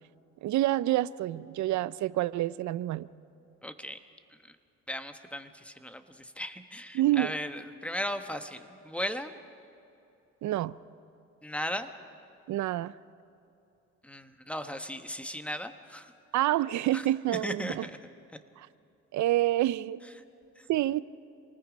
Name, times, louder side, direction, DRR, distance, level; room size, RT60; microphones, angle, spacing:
voice 1, 0.4-3.1 6.9-7.3 10.4-10.8 12.5-12.9 16.3-17.9 18.6-18.7 19.1-20.0 20.7-21.0, right 15 dB, 70° right, 18 dB, 0.5 m, -27 dB
voice 2, 3.6-4.0 4.9-9.3 11.4-11.9 14.0-16.1 16.9-17.0 17.4-18.0 20.6-20.7, equal, 5° left, 8 dB, 1.1 m, -37 dB
27.0 x 19.0 x 5.2 m, 2.7 s
cardioid pair, 90°, 30 cm